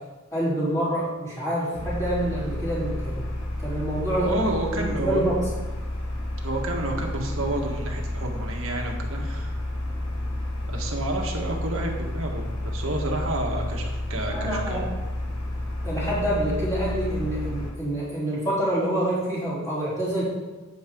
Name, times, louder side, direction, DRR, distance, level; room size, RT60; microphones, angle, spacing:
voice 1, 0.3-3.3 3.6-4.3 4.7-5.4 14.3-14.8 15.8-20.2, right 1 dB, 15° left, -10 dB, 4.0 m, -27 dB
sound 1, 1.7-17.7, left 1 dB, 80° left, 2.0 m, -31 dB
voice 2, 4.1-5.2 6.4-9.6 10.7-14.8, right 2 dB, 70° right, 1 dB, 1.7 m, -30 dB
10.5 x 9.2 x 3.9 m, 1.2 s
head